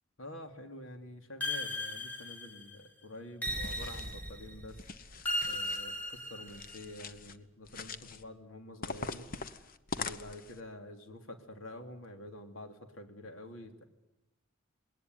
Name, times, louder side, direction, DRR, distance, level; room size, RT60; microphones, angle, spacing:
voice 1, 0.2-4.8 5.5-9.3 9.9-13.9, left 1 dB, 75° left, 5 dB, 3.0 m, -48 dB
sound 1, 1.4-2.7 3.4-4.5 5.2-6.8, left 1 dB, 10° left, 2.3 m, -37 dB
sound 2, 3.5-4.2 4.7-5.8 6.5-7.4 7.6-8.2 8.8-10.6, left 4 dB, 45° left, 1.1 m, -43 dB
sound 3, 3.5-6.4, right 1 dB, 25° right, 1.4 m, -46 dB
20.5 x 19.0 x 9.4 m, 0.89 s
head